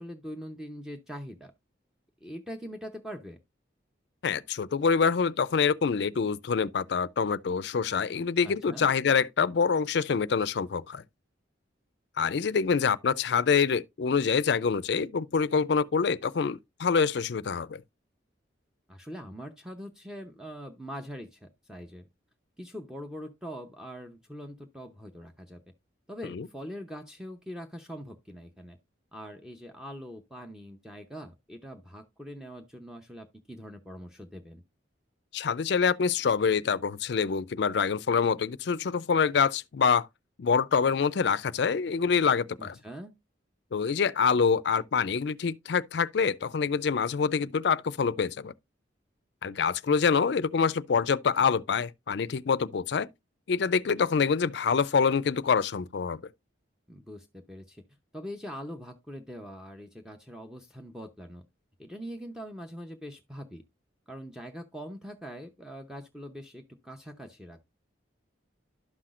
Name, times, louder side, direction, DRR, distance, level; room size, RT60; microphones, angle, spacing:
voice 1, 0.0-1.5 2.2-3.4 8.4-8.9 18.9-22.0 22.6-25.6 26.1-28.8 29.1-34.6 42.6-43.1 56.9-57.8 58.1-61.4 61.8-63.6 64.1-67.7, equal, 5° right, 0.6 m, -42 dB
voice 2, 4.2-11.0 12.2-17.8 26.3-26.5 35.3-40.1 40.4-42.7 43.7-48.5 49.4-53.1 53.5-56.2, left 6 dB, 60° left, 0.4 m, -26 dB
11.5 x 5.9 x 2.4 m
head